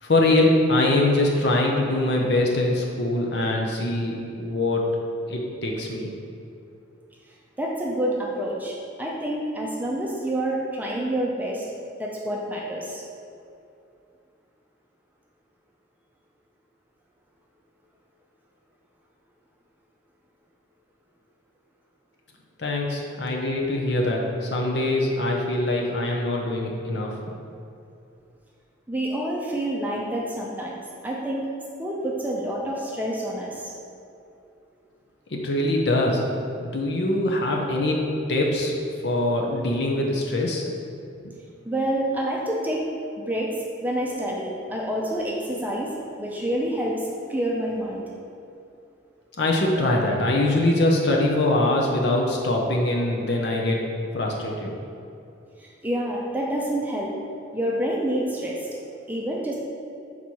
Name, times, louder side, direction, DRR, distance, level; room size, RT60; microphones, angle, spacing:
voice 1, 0.0-4.9 5.3-6.1 22.6-27.2 35.3-36.2 36.6-38.7 39.0-40.6 49.4-53.8 54.1-54.7, left 1 dB, 60° left, -1 dB, 0.6 m, -23 dB
voice 2, 7.6-11.6 12.0-13.0 28.9-31.5 31.8-33.7 41.6-42.8 43.2-45.9 46.2-48.0 55.6-57.1 57.5-58.7 59.1-59.5, right 1 dB, 10° right, -3 dB, 0.5 m, -28 dB
6.0 x 4.1 x 4.5 m, 2.6 s
head